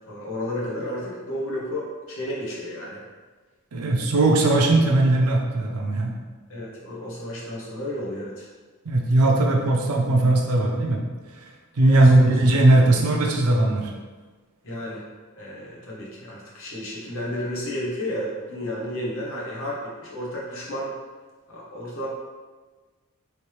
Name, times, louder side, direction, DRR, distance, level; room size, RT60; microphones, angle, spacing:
voice 1, 0.1-3.0 3.8-4.1 6.5-8.5 11.9-12.6 14.6-15.1 15.3-20.9 21.5-22.1, left 1 dB, 65° left, -4 dB, 1.0 m, -32 dB
voice 2, 3.7-6.1 8.8-11.0 11.4-11.5 11.8-13.9, right 2 dB, 85° right, 1 dB, 0.6 m, -19 dB
3.2 x 3.2 x 3.1 m, 1.3 s
head